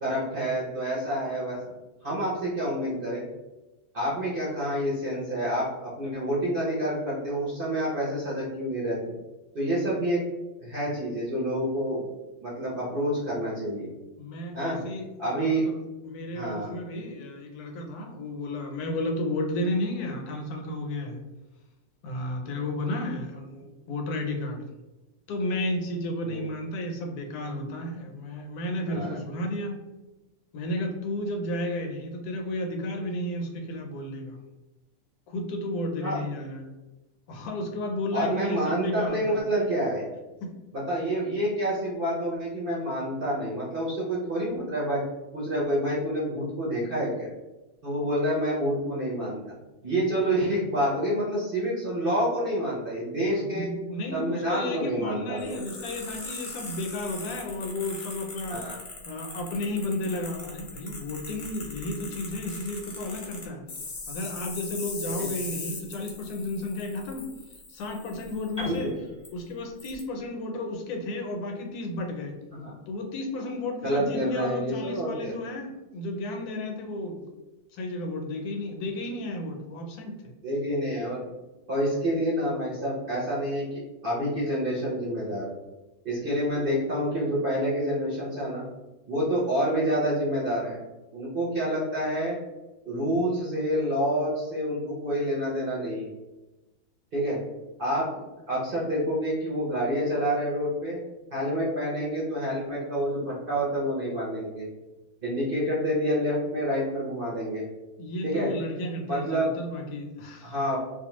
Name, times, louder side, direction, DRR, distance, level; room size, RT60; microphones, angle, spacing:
voice 1, 0.0-1.7 2.0-3.2 3.9-9.1 9.5-10.2 10.6-12.0 12.4-13.9 14.5-14.8 15.2-15.7 16.3-16.7 26.2-26.4 28.8-29.2 36.0-36.2 38.1-40.1 40.7-45.0 45.3-47.3 47.8-49.4 49.8-53.7 54.1-55.6 58.5-58.8 65.0-65.3 68.6-68.9 72.5-72.7 73.8-75.3 80.4-81.2 81.7-85.5 86.0-88.6 89.1-90.8 91.1-92.4 92.8-96.1 97.1-97.4 97.8-101.0 101.3-104.6 105.2-107.6 108.2-108.5 109.1-109.5 110.4-110.8, equal, 50° right, -6 dB, 0.7 m, -28 dB
voice 2, 14.2-15.8 16.0-21.2 22.0-24.7 25.3-29.8 30.5-34.4 35.3-36.7 37.3-39.4 40.4-40.5 42.8-42.9 53.3-58.6 59.1-63.6 64.1-67.3 67.7-68.9 69.3-72.3 72.9-77.2 77.7-80.3 108.0-110.5, left 1 dB, 80° left, 3 dB, 1.1 m, -33 dB
sound 1, 55.4-68.8 69.2-69.3 69.8-70.0, left 3 dB, 50° left, 0.7 m, -40 dB
Piano, 68.6-72.5, equal, 5° right, 0.4 m, -43 dB
2.5 x 2.3 x 2.9 m, 1.1 s
omnidirectional pair, 1.6 m